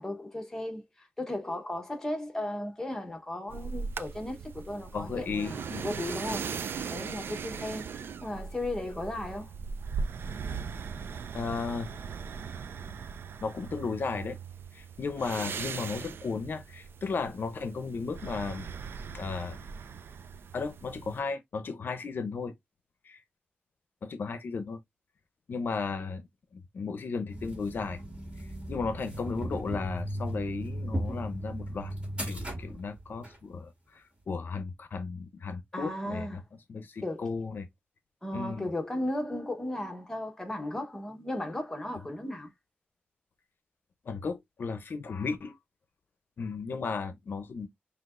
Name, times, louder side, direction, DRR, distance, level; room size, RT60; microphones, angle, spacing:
voice 1, 0.0-6.5 6.9-7.9 8.2-9.5 35.7-36.4 37.0-37.3 38.2-42.5, left 1 dB, 10° left, 1.0 m, -35 dB
sound 1, 3.5-21.2, right 6 dB, 75° right, 0.4 m, -39 dB
voice 2, 4.9-5.8 11.3-11.9 13.4-14.4 14.7-18.7 19.1-19.6 20.5-22.5 23.0-23.2 24.0-24.8 25.5-26.3 26.5-28.0 28.4-31.9 32.2-36.4 36.7-37.7 38.3-38.7 44.0-45.6 46.4-47.7, left 4 dB, 60° left, 0.6 m, -35 dB
sound 2, 27.3-33.4, equal, 25° right, 2.3 m, -36 dB
5.9 x 2.8 x 2.4 m
wide cardioid pair, 135°, 4 cm